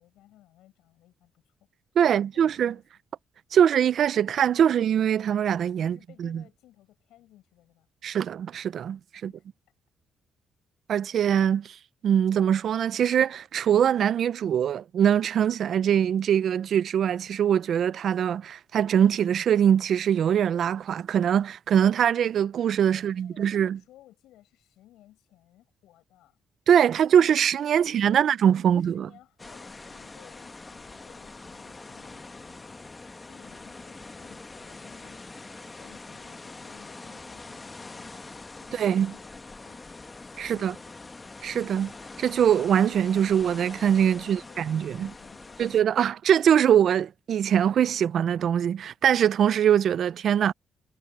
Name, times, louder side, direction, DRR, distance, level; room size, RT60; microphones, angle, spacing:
voice 1, 0.0-1.5 2.1-2.8 5.8-7.9 9.1-9.5 22.9-26.4 26.9-27.4 27.7-28.3 28.6-33.0 33.2-35.2 35.7-40.1 40.3-41.0 44.2-45.7, left 14 dB, 90° left, 5.4 m, -57 dB
voice 2, 2.0-2.8 3.5-6.4 8.0-9.3 10.9-11.8 12.0-23.8 26.7-29.1 38.8-39.1 40.4-40.8 41.4-41.9 42.2-45.1 45.6-50.5, right 9 dB, 65° right, 0.6 m, -23 dB
sound 1, 29.4-45.8, left 3 dB, 25° left, 1.2 m, -44 dB
cardioid pair, 90°, 0 cm